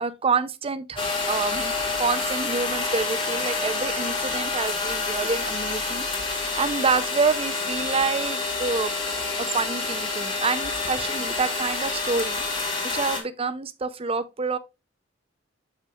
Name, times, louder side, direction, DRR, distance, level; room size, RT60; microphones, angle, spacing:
voice 1, 0.0-8.9 9.4-14.6, right 4 dB, 30° right, 0.6 m, -28 dB
sound 1, 1.0-13.2, left 3 dB, 30° left, 2.4 m, -28 dB
7.3 x 6.2 x 2.4 m
head